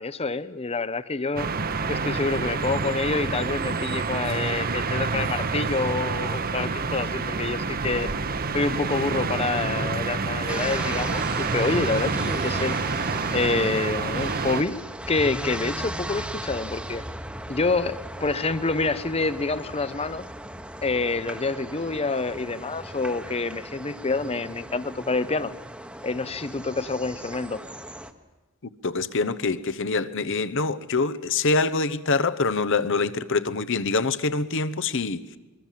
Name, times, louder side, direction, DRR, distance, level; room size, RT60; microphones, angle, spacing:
voice 1, 0.0-1.5 1.9-8.1 8.5-12.8 13.3-14.8 15.1-17.0 17.5-20.2 20.8-25.5 26.0-27.6, left 3 dB, 30° left, 0.7 m, -27 dB
sound 1, 1.4-14.6, right 4 dB, 45° right, 1.0 m, -28 dB
sound 2, 10.5-28.1, right 1 dB, 5° right, 1.1 m, -37 dB
voice 2, 28.8-35.2, left 3 dB, 60° left, 1.0 m, -25 dB
23.5 x 23.5 x 7.5 m
head